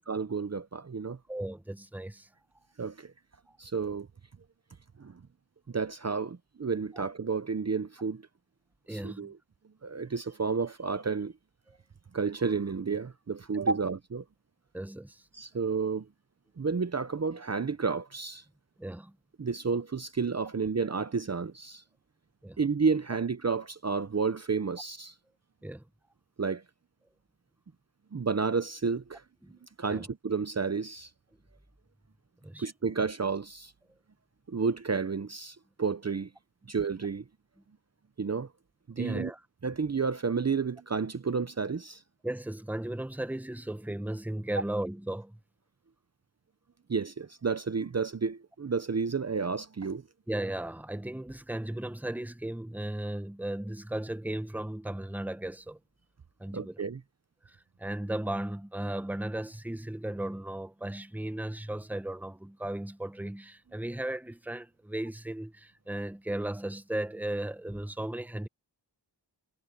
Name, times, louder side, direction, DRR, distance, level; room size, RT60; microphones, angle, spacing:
voice 1, 0.0-1.2 2.8-3.1 3.6-4.1 5.0-5.2 5.7-8.2 8.9-9.4 9.8-11.3 12.1-14.2 15.3-16.1 16.6-18.4 19.4-21.8 22.6-25.1 26.4-26.6 28.1-29.2 29.6-31.1 32.6-33.7 34.5-36.3 36.7-37.2 38.2-38.5 38.9-39.3 39.6-42.0 46.9-50.0 56.5-57.0, right 5 dB, 35° right, 0.8 m, -31 dB
voice 2, 1.3-2.3 3.5-3.6 6.9-7.0 8.9-9.3 11.7-11.8 14.7-15.2 18.8-19.2 22.4-22.6 25.6-25.8 29.4-29.6 29.9-30.0 32.4-32.7 39.0-39.4 42.2-45.4 50.3-55.8 56.4-56.8 57.4-68.5, right 1 dB, 5° right, 1.0 m, -36 dB
wide cardioid pair, 70°, 43 cm